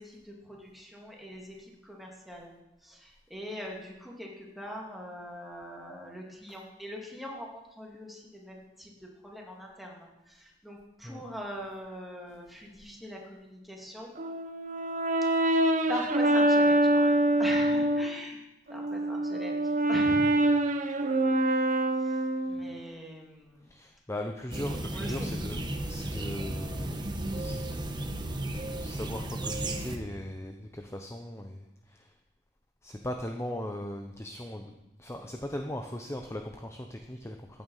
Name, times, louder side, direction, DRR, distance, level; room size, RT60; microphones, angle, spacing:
voice 1, 0.0-2.6 2.8-14.1 15.4-15.5 15.9-18.4 18.7-19.6 19.9-20.2 22.0-22.2 22.4-23.7 24.9-25.3, equal, ahead, -1 dB, 2.5 m, -42 dB
Brass instrument, 14.2-18.1 18.7-22.8, right 1 dB, 45° right, 1.0 m, -25 dB
voice 2, 23.7-27.0 27.3-27.6 28.7-32.1 32.8-34.7 35.0-37.6, left 1 dB, 15° left, 4 dB, 0.8 m, -38 dB
sound 1, 24.5-30.0, right 1 dB, 25° right, 1.2 m, -34 dB
15.0 x 9.2 x 5.6 m, 0.94 s
head